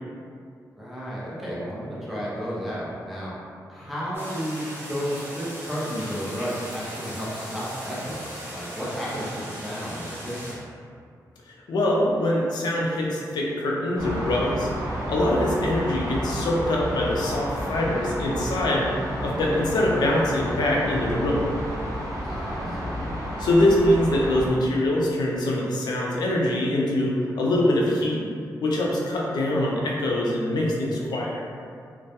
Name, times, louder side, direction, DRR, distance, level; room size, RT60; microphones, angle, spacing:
voice 1, 0.8-3.3 3.7-10.6 22.2-23.1, equal, ahead, -8 dB, 0.6 m, -32 dB
sound 1, 4.1-10.5, equal, 30° right, 1.0 m, -38 dB
voice 2, 11.5-14.7 14.9-18.9 19.2-21.4 23.4-28.2 28.6-31.5, left 1 dB, 90° left, -3 dB, 0.4 m, -23 dB
sound 2, 14.0-24.5, equal, 50° right, 0.5 m, -31 dB
2.3 x 2.1 x 2.8 m, 2.3 s
wide cardioid pair, 140°, 7 cm